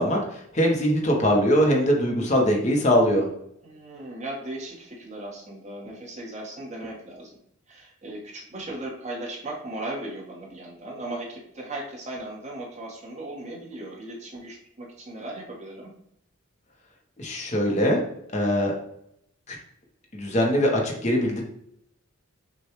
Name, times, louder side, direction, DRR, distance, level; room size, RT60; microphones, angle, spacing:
voice 1, 0.0-3.3 17.2-18.0 18.3-18.8 19.5-19.6 20.1-21.4, equal, 30° left, 0 dB, 0.7 m, -22 dB
voice 2, 3.6-7.4 7.7-15.9, right 1 dB, 30° right, -3 dB, 1.1 m, -37 dB
6.2 x 2.3 x 3.0 m, 0.74 s
head